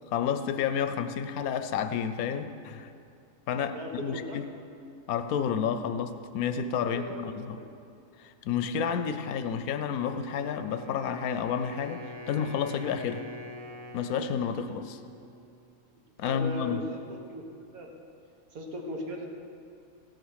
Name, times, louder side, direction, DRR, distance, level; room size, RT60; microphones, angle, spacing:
voice 1, 0.1-2.9 3.5-4.5 5.1-7.6 8.2-13.2 13.9-15.0 16.2-16.8, left 7 dB, 90° left, 9 dB, 1.1 m, -30 dB
voice 2, 3.7-4.4 6.9-7.7 15.9-17.4 17.7-17.9 18.5-19.3, equal, 85° right, 1 dB, 1.8 m, -38 dB
Wind instrument woodwind instrument, 10.0-15.9, equal, 35° right, 0.7 m, -45 dB
16.0 x 6.6 x 6.3 m, 2.5 s
omnidirectional pair, 1.5 m